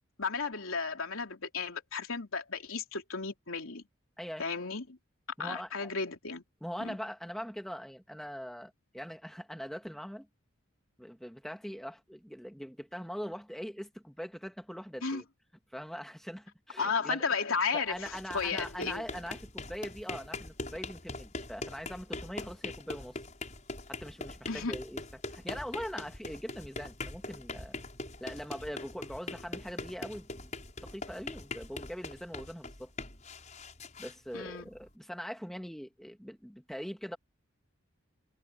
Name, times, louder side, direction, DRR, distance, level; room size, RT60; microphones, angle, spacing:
voice 1, 0.2-3.8 4.4-5.0 5.4-6.4 6.8-7.0 15.0-15.2 16.8-18.1 18.3-19.1 24.5-24.8 34.3-34.7, left 5 dB, 85° left, 3.3 m, -34 dB
voice 2, 5.4-5.9 6.6-10.3 11.0-15.2 15.7-17.3 17.7-23.2 23.9-25.0 25.3-27.8 28.2-30.5 30.8-32.9 34.0-37.2, equal, ahead, 2.2 m, -42 dB
sound 1, 17.9-34.9, left 2 dB, 35° left, 7.4 m, -42 dB
head